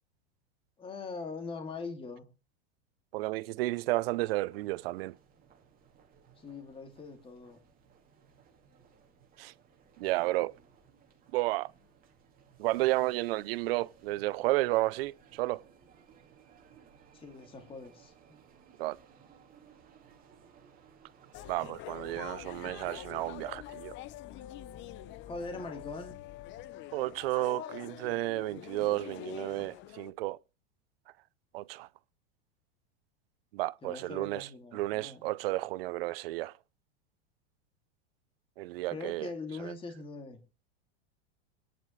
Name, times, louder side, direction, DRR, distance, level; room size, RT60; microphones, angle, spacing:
voice 1, 0.8-2.3 6.4-7.6 17.1-18.4 25.3-26.2 33.8-35.3 38.8-40.4, left 4 dB, 15° left, 2.5 m, -42 dB
voice 2, 3.1-5.1 9.4-9.5 10.0-10.5 11.3-11.7 12.6-15.6 18.8-19.0 21.5-23.9 26.9-30.4 31.5-31.9 33.5-36.5 38.6-39.3 39.6-39.7, right 19 dB, 65° right, 0.6 m, -32 dB
sound 1, 3.9-21.5, right 7 dB, 25° right, 2.4 m, -61 dB
sound 2, 21.3-30.1, left 13 dB, 35° left, 0.8 m, -45 dB
23.5 x 10.5 x 3.2 m
supercardioid pair, 135°, 32 cm